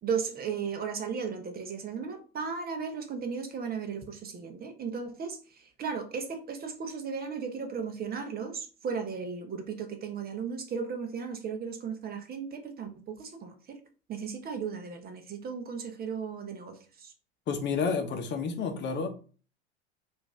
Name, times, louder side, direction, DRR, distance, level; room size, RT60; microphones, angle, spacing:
voice 1, 0.0-13.8 14.1-17.1, right 6 dB, 30° right, 6 dB, 0.8 m, -36 dB
voice 2, 17.5-19.1, left 5 dB, 35° left, 6 dB, 0.9 m, -30 dB
5.0 x 2.7 x 3.6 m, 0.38 s
hypercardioid pair, 85°, 33 cm